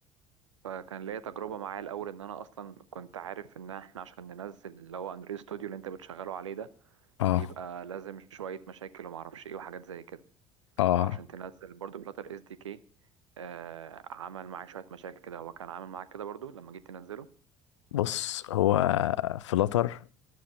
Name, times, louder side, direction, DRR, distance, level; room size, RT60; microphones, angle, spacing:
voice 1, 0.6-7.0 7.3-10.2 10.9-12.8 13.4-17.3, right 8 dB, 80° right, 0.6 m, -41 dB
voice 2, 10.8-11.2 17.9-20.0, left 13 dB, 75° left, 0.4 m, -26 dB
12.5 x 11.5 x 4.3 m
figure-of-eight pair, 55°, 16 cm